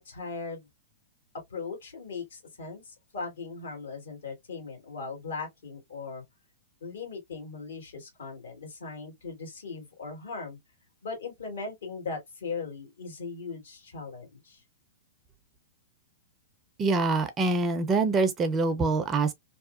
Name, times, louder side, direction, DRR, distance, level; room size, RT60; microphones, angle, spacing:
voice 1, 0.1-0.7 1.5-6.2 6.8-10.6 11.0-14.6, left 4 dB, 75° left, 1.6 m, -39 dB
voice 2, 16.8-19.3, right 3 dB, 25° right, 0.5 m, -25 dB
2.8 x 2.0 x 2.5 m
hypercardioid pair, 115°, 0 cm